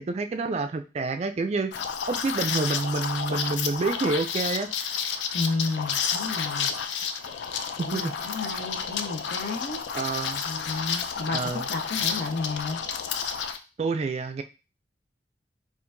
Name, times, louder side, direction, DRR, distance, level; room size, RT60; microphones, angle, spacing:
voice 1, 0.0-1.8 2.1-4.7 7.8-8.1 9.9-10.4 11.3-11.7 13.8-14.4, right 3 dB, 35° right, 7 dB, 0.3 m, -28 dB
Liquid, 1.7-13.6, left 7 dB, 80° left, 0.4 m, -31 dB
voice 2, 5.3-6.7 7.8-9.8 10.4-12.8, left 3 dB, 60° left, 2 dB, 0.8 m, -32 dB
4.4 x 2.4 x 2.6 m, 0.31 s
head